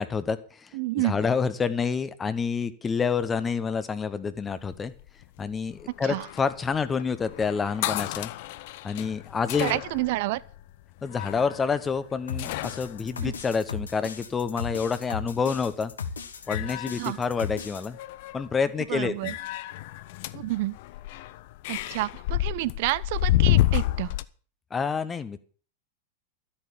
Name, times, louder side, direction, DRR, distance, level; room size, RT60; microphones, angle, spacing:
voice 1, 0.0-0.7 1.0-4.9 5.4-8.3 8.8-9.8 11.0-15.9 16.5-18.0 18.3-19.3 24.7-25.4, left 5 dB, 15° left, 1.0 m, -28 dB
voice 2, 0.7-1.1 6.0-6.3 9.6-10.4 13.2-13.3 17.0-17.2 18.9-19.4 20.3-20.8 21.7-24.1, right 18 dB, 50° right, 0.6 m, -29 dB
sound 1, 4.5-14.2 15.6-15.9 16.3-17.6 17.9-18.5 19.2-24.2, left 16 dB, 50° left, 0.6 m, -30 dB
sound 2, 12.3-17.9, left 6 dB, 70° left, 1.4 m, -36 dB
13.0 x 8.8 x 6.9 m
figure-of-eight pair, 90°, 0 cm